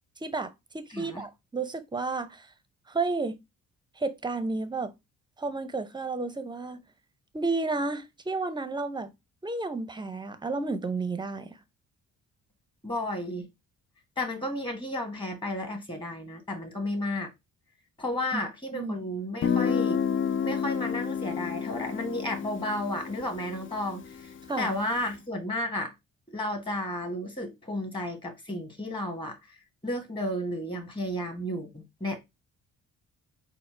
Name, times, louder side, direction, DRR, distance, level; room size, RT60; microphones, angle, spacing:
voice 1, 0.2-2.5 2.9-3.4 4.0-4.9 5.4-6.8 7.3-9.1 9.4-11.6 18.3-19.0 24.5-24.7, right 3 dB, 15° right, 0.6 m, -32 dB
voice 2, 0.9-1.2 12.8-13.5 14.2-17.3 18.0-20.0 20.4-25.9 26.3-29.6 29.8-32.2, left 1 dB, 15° left, 1.5 m, -33 dB
Guitar, 19.4-25.0, left 7 dB, 40° left, 0.5 m, -30 dB
4.3 x 2.1 x 4.3 m
cardioid pair, 90°, 30 cm